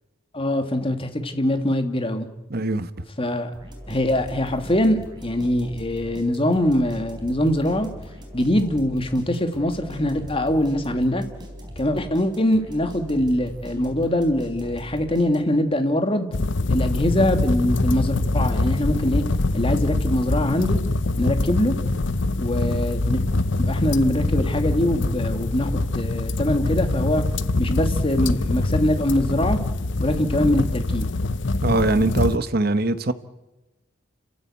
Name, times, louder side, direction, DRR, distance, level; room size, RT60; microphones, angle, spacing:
voice 1, 0.3-2.3 3.2-3.5 3.9-7.9 8.3-11.2 11.8-16.3 16.7-19.2 19.5-20.8 21.2-21.7 22.4-23.2 23.6-27.2 27.6-29.6 30.0-31.0, left 1 dB, 30° left, 2.0 m, -23 dB
voice 2, 2.5-2.9 31.6-33.1, right 2 dB, 55° right, 1.1 m, -22 dB
sound 1, 3.5-15.7, equal, 25° right, 4.5 m, -40 dB
sound 2, 16.3-32.4, left 2 dB, 70° left, 0.8 m, -24 dB
30.0 x 13.5 x 8.6 m
head